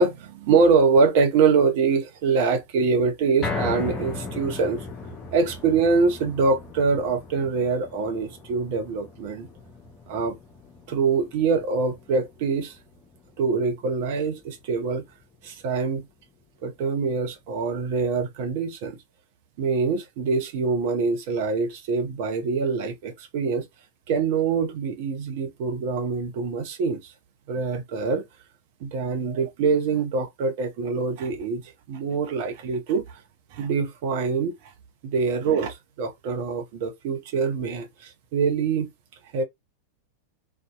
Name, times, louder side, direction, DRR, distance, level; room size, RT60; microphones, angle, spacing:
voice 1, 0.0-4.8 5.3-9.5 10.1-10.4 10.9-12.7 13.4-15.0 15.4-16.0 16.6-19.0 19.6-23.6 24.1-27.1 27.5-28.2 28.8-33.0 33.5-34.5 35.0-38.9 39.3-39.4, right 4 dB, 50° right, 0.7 m, -24 dB
sound 1, 3.4-15.7 16.1-16.2 16.6-16.7, left 3 dB, 25° left, 0.6 m, -38 dB
2.6 x 2.2 x 2.3 m
figure-of-eight pair, 90°, 0 cm